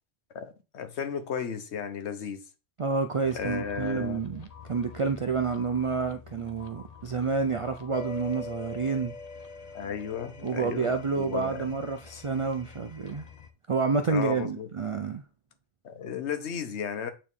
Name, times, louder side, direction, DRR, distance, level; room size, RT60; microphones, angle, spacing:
voice 1, 0.3-2.4 3.3-4.2 9.7-11.7 14.1-14.7 15.8-17.1, left 7 dB, 85° left, 1.1 m, -34 dB
voice 2, 2.8-9.2 10.4-13.3 13.7-15.2, right 4 dB, 60° right, 0.3 m, -29 dB
sound 1, 3.2-13.5, left 5 dB, 40° left, 0.7 m, -45 dB
8.7 x 3.2 x 3.6 m
omnidirectional pair, 1.1 m